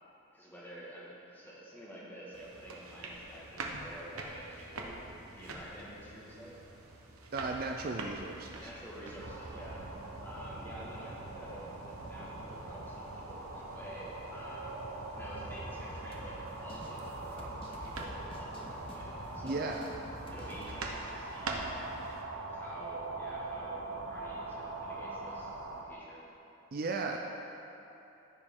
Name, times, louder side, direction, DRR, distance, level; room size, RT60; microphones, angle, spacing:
voice 1, 0.3-6.6 8.6-9.9 10.2-14.8 15.1-19.7 20.3-21.7 22.5-26.3, equal, 10° left, -7 dB, 1.6 m, -49 dB
sound 1, 2.3-22.2, right 2 dB, 90° right, 0.9 m, -46 dB
voice 2, 7.3-8.7 19.4-19.9 26.7-27.2, right 3 dB, 45° right, 2 dB, 0.4 m, -35 dB
sound 2, 9.2-25.8, right 2 dB, 60° right, 0.8 m, -43 dB
sound 3, 15.9-20.8, left 1 dB, 25° left, 0.6 m, -49 dB
14.5 x 5.1 x 3.6 m, 2.9 s
head